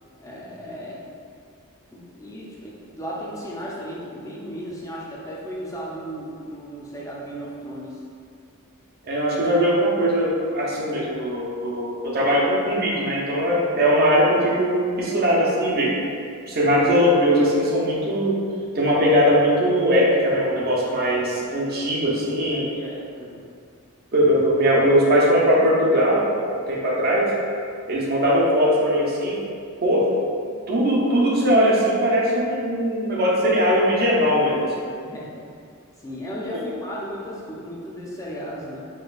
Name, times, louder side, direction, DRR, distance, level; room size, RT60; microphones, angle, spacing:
voice 1, 0.2-1.0 1.9-8.0 22.5-23.4 35.0-35.4 36.0-38.9, equal, 15° left, -6 dB, 0.5 m, -35 dB
voice 2, 9.0-15.9 16.5-18.4 18.7-22.7 24.1-27.3 27.9-29.4 29.8-30.1 30.7-34.8 36.5-36.6, equal, 45° right, -5 dB, 0.6 m, -20 dB
4.2 x 2.3 x 2.4 m, 2.3 s
head